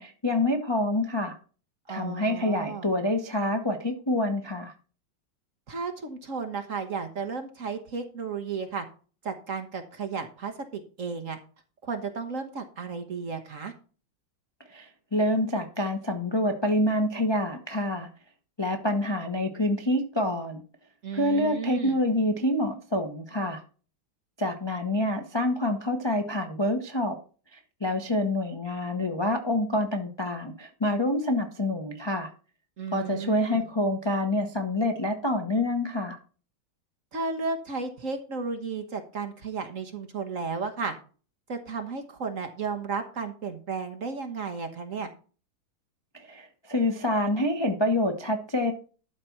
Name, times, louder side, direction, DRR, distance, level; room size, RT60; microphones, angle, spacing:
voice 1, 0.0-1.4 1.9-4.7 14.7-18.1 18.6-20.6 21.1-23.6 24.4-27.2 27.5-32.3 32.9-36.2 46.2-48.7, left 1 dB, 30° left, 4 dB, 0.4 m, -27 dB
voice 2, 1.9-2.9 5.7-8.9 9.2-11.4 11.8-13.7 21.0-22.0 32.8-33.7 37.1-40.9 41.5-45.1, right 5 dB, 45° right, 6 dB, 1.3 m, -33 dB
12.0 x 4.1 x 5.9 m, 0.38 s
omnidirectional pair, 2.3 m